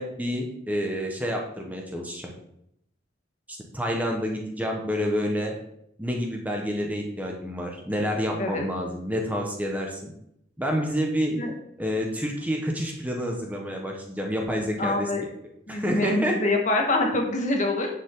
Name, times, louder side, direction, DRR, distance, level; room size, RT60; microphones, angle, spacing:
voice 1, 0.0-2.3 3.7-5.6 6.0-10.1 10.6-11.4 11.8-15.1 15.7-16.4, equal, 10° right, 0 dB, 1.3 m, -28 dB
voice 2, 14.8-15.2 15.7-17.9, left 2 dB, 40° left, 2 dB, 1.6 m, -25 dB
10.0 x 7.4 x 3.9 m, 0.75 s
head